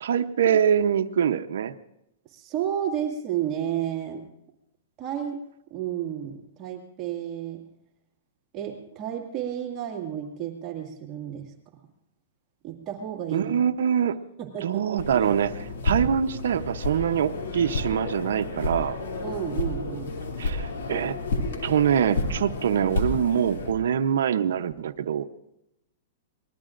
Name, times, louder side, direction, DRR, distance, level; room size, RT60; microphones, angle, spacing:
voice 1, 0.0-1.7 13.3-14.2 14.6-15.5 15.8-19.0 20.4-21.2 21.6-25.2, right 8 dB, 80° right, 6 dB, 0.8 m, -24 dB
voice 2, 2.2-4.2 5.0-5.4 5.7-7.6 8.5-11.5 12.6-13.5 14.4-15.3 15.9-16.1 19.2-20.1, right 10 dB, 25° right, -1 dB, 2.1 m, -32 dB
sound 1, 15.0-23.7, left 2 dB, 80° left, 2.8 m, -31 dB
25.5 x 20.0 x 2.6 m, 0.83 s
hypercardioid pair, 155°, 0 cm